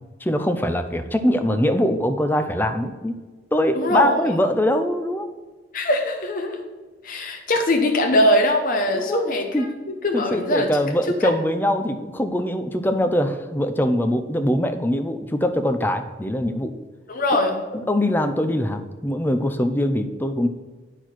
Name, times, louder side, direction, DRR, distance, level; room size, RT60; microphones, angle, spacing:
voice 1, 0.2-3.2 3.5-5.3 8.9-9.2 9.5-9.7 10.1-16.8 17.9-20.5, equal, 10° left, 7 dB, 0.5 m, -22 dB
voice 2, 3.7-4.4 5.7-6.6 7.0-9.7 10.0-10.7 11.2-11.3 17.1-17.6, left 1 dB, 50° left, 3 dB, 0.9 m, -21 dB
9.9 x 4.5 x 6.0 m, 1.3 s
head